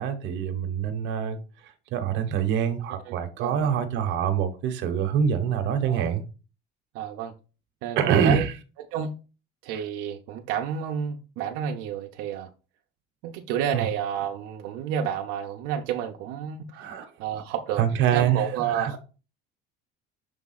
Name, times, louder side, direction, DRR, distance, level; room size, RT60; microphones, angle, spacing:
voice 1, 0.0-1.4 1.9-6.2 8.0-8.5 13.7-13.8 16.7-17.1 17.8-19.0, right 8 dB, 60° right, 1.1 m, -25 dB
voice 2, 3.1-3.7 5.8-6.2 6.9-7.3 7.8-8.5 8.9-9.2 9.6-12.5 13.2-16.9 17.2-17.8 18.1-19.0, right 8 dB, 85° right, 0.8 m, -30 dB
6.6 x 3.5 x 4.1 m
cardioid pair, 150°, 21 cm